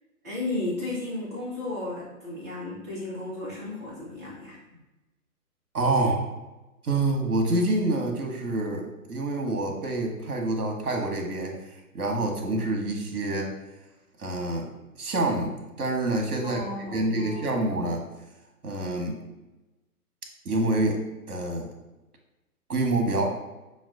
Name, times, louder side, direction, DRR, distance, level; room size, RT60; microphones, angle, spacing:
voice 1, 0.2-4.6 16.4-17.5, left 2 dB, 10° right, -7 dB, 0.5 m, -34 dB
voice 2, 5.7-6.3 6.8-11.6 11.9-13.5 14.2-14.7 15.0-16.6 16.9-18.0 18.6-19.2 20.4-21.0 21.3-21.7 22.7-23.3, right 2 dB, 70° right, 2 dB, 1.0 m, -27 dB
5.8 x 2.2 x 2.4 m, 1.0 s
figure-of-eight pair, 125°, 45 cm